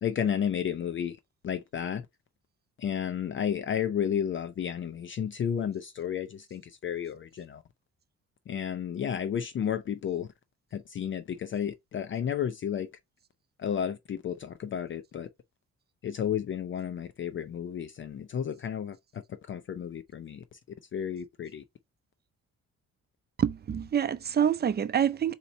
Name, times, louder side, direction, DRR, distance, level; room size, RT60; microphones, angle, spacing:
voice 1, 0.0-1.2 1.4-2.0 2.8-7.6 8.5-10.3 10.7-12.9 13.6-15.3 16.0-19.2 19.5-20.4 20.9-21.6, left 8 dB, 40° left, 0.5 m, -32 dB
voice 2, 23.4-25.3, right 9 dB, 35° right, 0.6 m, -26 dB
4.0 x 2.9 x 4.3 m
cardioid pair, 90°, 30 cm